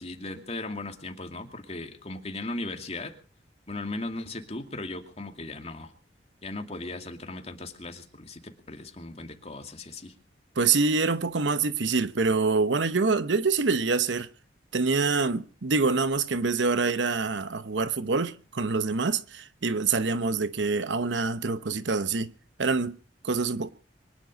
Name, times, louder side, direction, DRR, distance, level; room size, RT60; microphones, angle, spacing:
voice 1, 0.0-3.1 3.7-5.9 6.4-10.1, left 2 dB, 35° left, 2.5 m, -37 dB
voice 2, 10.6-14.3 14.7-22.3 22.6-23.0 23.2-23.7, right 4 dB, 80° right, 0.9 m, -26 dB
24.0 x 10.5 x 5.3 m
head